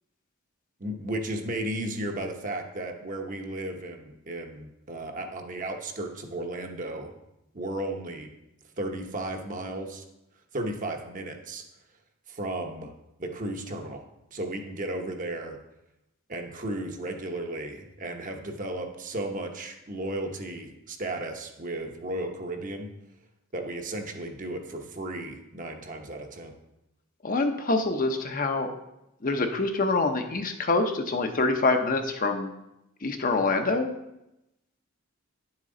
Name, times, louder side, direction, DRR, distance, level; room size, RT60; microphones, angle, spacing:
voice 1, 0.8-7.1 7.5-8.3 8.8-10.0 10.5-11.6 12.3-12.9 13.2-14.0 14.3-15.6 16.3-22.9 23.5-26.5, right 1 dB, 40° right, 4 dB, 1.0 m, -34 dB
voice 2, 27.2-28.7 29.2-32.5 33.0-33.9, left 3 dB, 40° left, 5 dB, 0.7 m, -25 dB
10.0 x 7.4 x 3.8 m, 0.89 s
head